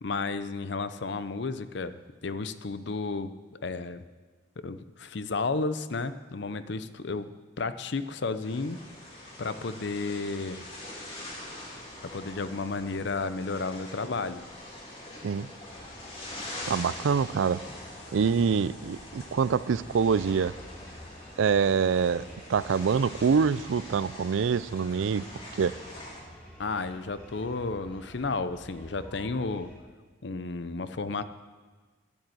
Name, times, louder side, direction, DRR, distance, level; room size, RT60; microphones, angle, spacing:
voice 1, 0.0-4.0 4.6-8.8 9.4-10.6 12.1-14.5 26.6-29.7 30.2-31.2, left 3 dB, 60° left, 12 dB, 0.6 m, -32 dB
sound 1, 8.4-26.2, left 1 dB, 30° left, 2.4 m, -44 dB
sound 2, 15.6-29.8, equal, 5° left, 3.0 m, -50 dB
voice 2, 16.7-17.6 18.1-20.6 21.4-25.3 25.6-25.8, right 6 dB, 75° right, 18 dB, 0.4 m, -25 dB
12.5 x 8.5 x 7.8 m, 1.3 s
head